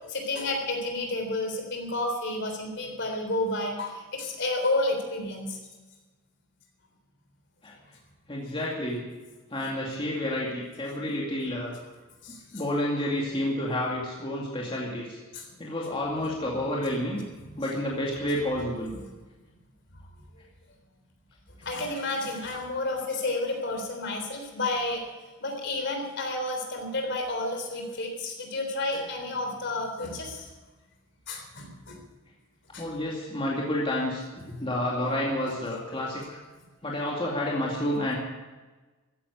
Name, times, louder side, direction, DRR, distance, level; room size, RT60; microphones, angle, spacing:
voice 1, 0.0-5.6 12.2-12.6 15.3-15.5 17.4-17.6 18.9-19.0 21.6-25.0 25.4-30.5 31.3-32.0 32.7-32.9, left 2 dB, 55° left, 3 dB, 3.6 m, -31 dB
voice 2, 8.3-9.1 9.5-11.7 12.5-15.2 15.6-17.2 17.6-18.9 32.8-36.4 36.8-38.1, left 1 dB, 25° left, -3 dB, 2.3 m, -30 dB
15.0 x 10.0 x 8.4 m, 1.3 s
head